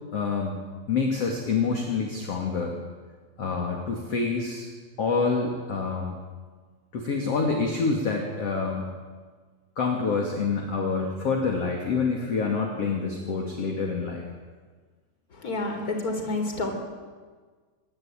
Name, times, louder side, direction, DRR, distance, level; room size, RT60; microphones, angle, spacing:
voice 1, 0.1-0.6 0.9-2.8 3.4-4.7 5.0-6.2 6.9-8.9 9.8-14.2, left 4 dB, 40° left, 1 dB, 2.8 m, -27 dB
voice 2, 15.3-16.8, left 2 dB, 20° left, 5 dB, 3.6 m, -29 dB
25.5 x 21.5 x 9.1 m, 1.5 s
omnidirectional pair, 5.8 m